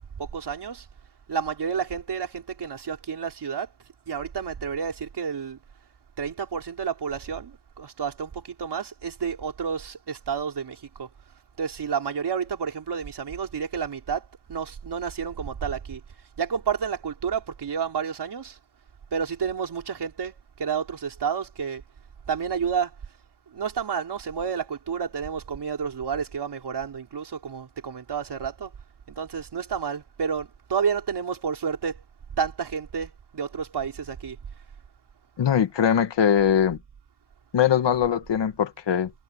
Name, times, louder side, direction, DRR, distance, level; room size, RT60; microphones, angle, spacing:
voice 1, 0.2-0.8 1.3-3.7 4.1-5.6 6.2-11.1 11.6-14.2 14.5-16.0 16.4-18.6 19.1-21.8 22.3-22.9 23.5-28.7 29.1-32.0 32.4-34.4, right 6 dB, 60° right, 4.8 m, -30 dB
voice 2, 35.4-36.8 37.5-39.1, left 8 dB, 65° left, 1.8 m, -21 dB
wide cardioid pair, 120°, 45 cm